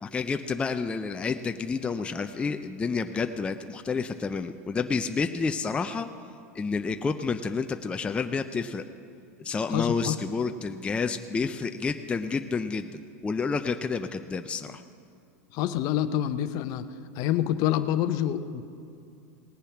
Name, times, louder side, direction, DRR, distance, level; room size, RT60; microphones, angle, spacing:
voice 1, 0.0-6.1 6.5-8.8 9.4-14.8, left 4 dB, 15° left, 7 dB, 0.4 m, -29 dB
voice 2, 9.7-10.2 15.5-16.9 17.2-18.6, left 11 dB, 50° left, 12 dB, 0.7 m, -27 dB
18.5 x 6.9 x 5.8 m, 2.5 s
hypercardioid pair, 120°, 8 cm